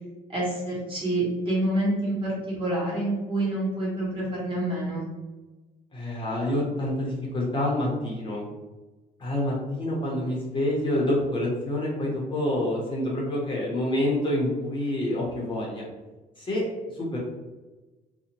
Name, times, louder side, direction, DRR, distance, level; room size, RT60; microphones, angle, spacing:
voice 1, 0.3-5.1, right 1 dB, 30° right, -6 dB, 1.3 m, -27 dB
voice 2, 5.9-8.4 9.2-15.9 16.4-16.7 16.9-17.2, left 1 dB, 30° left, -4 dB, 0.7 m, -27 dB
2.7 x 2.1 x 2.8 m, 1.2 s
cardioid pair, 110°, 17 cm